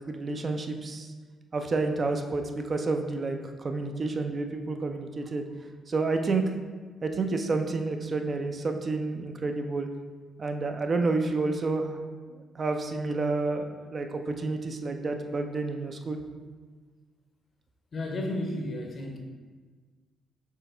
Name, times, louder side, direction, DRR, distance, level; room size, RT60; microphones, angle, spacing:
voice 1, 0.1-1.1 1.5-5.4 5.9-6.4 7.0-9.9 10.4-12.0 12.3-16.2, right 3 dB, 40° right, 6 dB, 0.5 m, -29 dB
voice 2, 17.9-19.2, left 1 dB, 45° left, 2 dB, 0.7 m, -32 dB
4.6 x 3.4 x 3.3 m, 1.4 s
hypercardioid pair, 40°, 0 cm